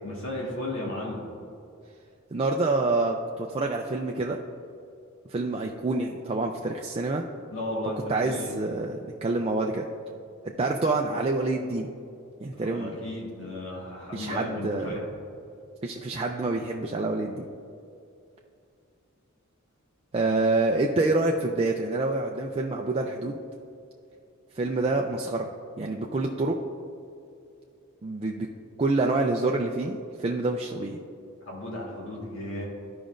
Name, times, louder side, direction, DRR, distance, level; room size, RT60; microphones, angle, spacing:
voice 1, 0.0-1.3 7.5-8.5 12.5-15.1 31.4-32.6, left 1 dB, 70° left, -4 dB, 1.5 m, -34 dB
voice 2, 2.3-4.4 5.3-7.2 8.1-9.9 10.4-11.9 12.4-13.0 14.1-14.9 15.8-17.5 20.1-23.4 24.5-25.5 25.8-26.6 28.0-28.5 28.8-31.0, right 2 dB, 30° right, 1 dB, 0.4 m, -27 dB
13.0 x 5.1 x 2.5 m, 2.6 s
head